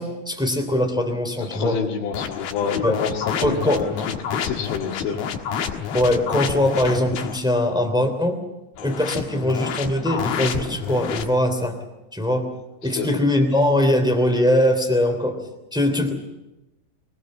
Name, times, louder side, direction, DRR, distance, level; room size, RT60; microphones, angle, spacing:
voice 1, 0.0-1.8 2.8-3.0 3.4-3.8 5.9-8.4 8.8-11.8 12.1-12.5 12.8-15.4 15.7-16.1, left 1 dB, ahead, 4 dB, 1.9 m, -21 dB
voice 2, 1.4-3.9 4.3-5.3 13.0-13.2, left 6 dB, 90° left, -3 dB, 4.3 m, -27 dB
sound 1, 2.1-7.4 8.8-11.3, left 7 dB, 65° left, 3.1 m, -29 dB
23.0 x 20.0 x 7.5 m, 1.0 s
omnidirectional pair, 5.2 m